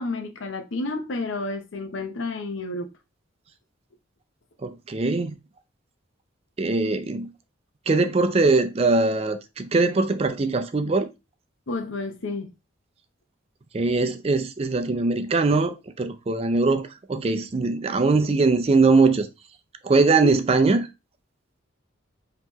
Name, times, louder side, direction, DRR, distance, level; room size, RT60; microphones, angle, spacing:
voice 1, 0.0-2.9 11.7-12.5 20.2-20.4, left 2 dB, 75° left, 0.8 m, -30 dB
voice 2, 4.6-5.3 6.6-7.3 7.9-11.1 13.7-19.3 19.8-20.8, right 3 dB, 30° right, 0.4 m, -21 dB
5.5 x 2.9 x 3.0 m
head